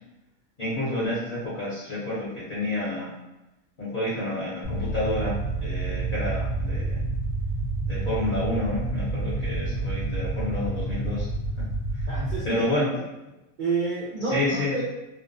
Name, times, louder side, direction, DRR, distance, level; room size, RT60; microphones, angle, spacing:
voice 1, 0.6-3.1 3.8-7.0 7.9-11.3 11.9-12.1 12.4-12.9 14.2-14.7, left 1 dB, 45° left, -8 dB, 0.8 m, -29 dB
sound 1, 4.6-12.4, right 2 dB, 80° left, 1.1 m, -29 dB
voice 2, 12.1-12.6 13.6-14.8, right 4 dB, 70° right, -8 dB, 0.4 m, -28 dB
2.6 x 2.0 x 2.5 m, 0.97 s
omnidirectional pair, 1.5 m